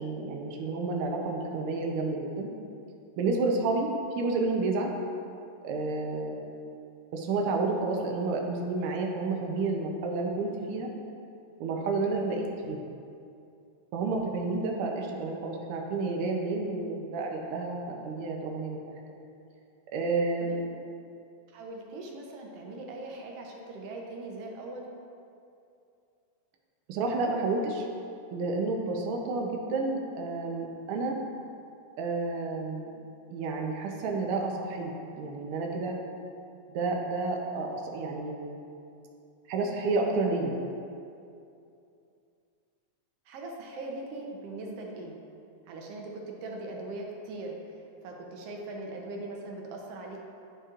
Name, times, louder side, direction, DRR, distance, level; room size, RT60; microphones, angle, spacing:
voice 1, 0.0-2.5 3.2-3.9 4.2-4.9 5.6-6.5 7.1-10.9 11.6-12.8 13.9-18.8 19.9-20.7 26.9-27.9 28.3-31.2 32.0-33.0 33.3-36.0 36.7-38.6 39.5-40.5, right 3 dB, 90° right, 0 dB, 1.2 m, -30 dB
voice 2, 21.5-24.9 43.3-45.1 45.7-50.2, right 2 dB, 70° right, 0 dB, 1.5 m, -40 dB
10.0 x 5.5 x 2.4 m, 2.6 s
omnidirectional pair, 3.3 m